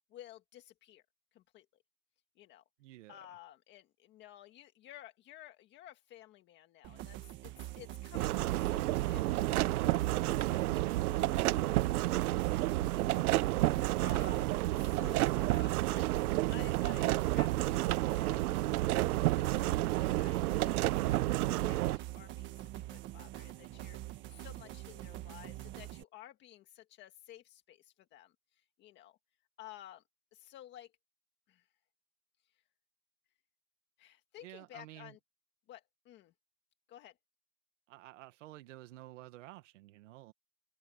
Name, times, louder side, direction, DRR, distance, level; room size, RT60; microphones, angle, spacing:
voice 1, 0.1-1.0 1.3-1.7 2.3-2.6 3.1-18.6 19.3-29.2 29.6-30.0 30.3-30.9 31.5-31.7 34.0-35.2 35.7-36.3 36.9-37.2, left 13 dB, 25° left, 1.7 m, -55 dB
voice 2, 2.8-3.3 34.4-35.1 37.9-40.3, right 17 dB, 60° right, 1.7 m, -51 dB
sound 1, 6.8-26.0, right 15 dB, 25° right, 1.5 m, -45 dB
sound 2, 8.1-22.0, right 17 dB, 85° right, 0.7 m, -30 dB
supercardioid pair, 170°, 43 cm